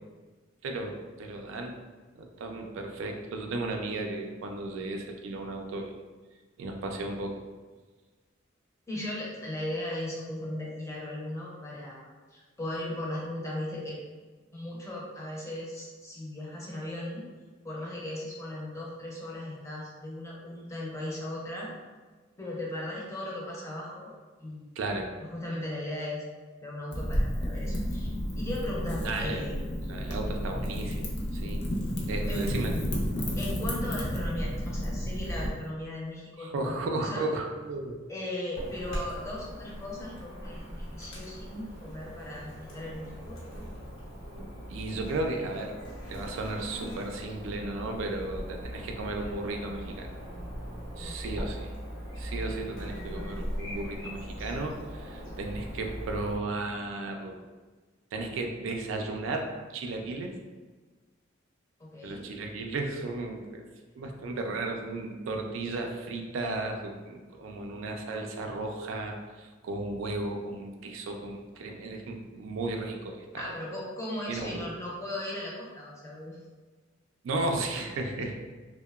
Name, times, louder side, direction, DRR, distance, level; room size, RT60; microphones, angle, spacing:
voice 1, 0.6-1.8 2.2-5.9 6.6-7.4 24.8-25.1 29.0-29.5 29.9-31.6 32.1-32.9 36.4-37.9 44.7-45.8 46.1-50.1 51.0-51.6 52.2-57.4 58.1-60.3 62.0-63.6 64.0-73.5 74.3-74.6 77.2-78.4, right 2 dB, 85° right, 3 dB, 0.3 m, -34 dB
voice 2, 8.9-14.0 14.5-17.2 17.6-21.7 22.4-24.1 24.4-24.6 25.2-26.2 26.6-28.1 28.3-29.7 32.3-32.5 33.4-37.3 38.1-43.4 51.0-51.4 61.8-62.3 73.4-76.4, left 1 dB, 15° left, -4 dB, 0.5 m, -37 dB
Wind / Fire, 26.9-35.5, equal, 60° left, 0.5 m, -31 dB
Chirp tweet / Buzz, 38.5-56.4, equal, 85° left, 0.8 m, -40 dB
2.8 x 2.0 x 2.3 m, 1.3 s
head